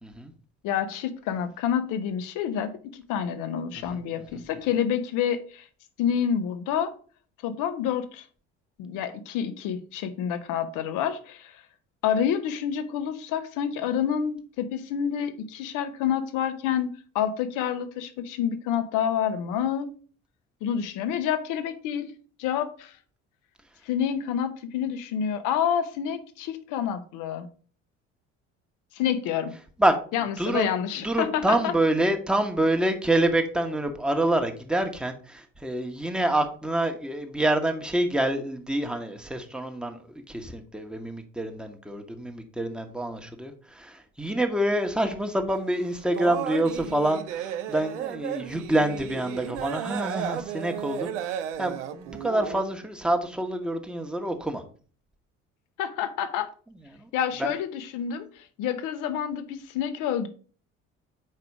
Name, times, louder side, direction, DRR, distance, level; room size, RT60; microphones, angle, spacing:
voice 1, 0.0-0.3 3.7-4.0 4.3-4.4 29.8-30.0 30.4-30.7 31.0-40.0 40.3-54.6 56.9-57.1 57.4-57.5, right 1 dB, ahead, 1.2 m, -27 dB
voice 2, 0.6-5.7 6.0-6.9 7.4-8.2 8.8-11.6 12.0-19.9 20.6-22.1 22.4-22.9 23.9-27.5 28.9-29.5 30.1-31.7 55.8-56.5 57.1-58.3 58.6-60.3, left 8 dB, 55° left, 1.0 m, -28 dB
sound 1, 45.5-52.6, right 10 dB, 70° right, 0.7 m, -34 dB
6.6 x 4.9 x 4.7 m
figure-of-eight pair, 55°, 38 cm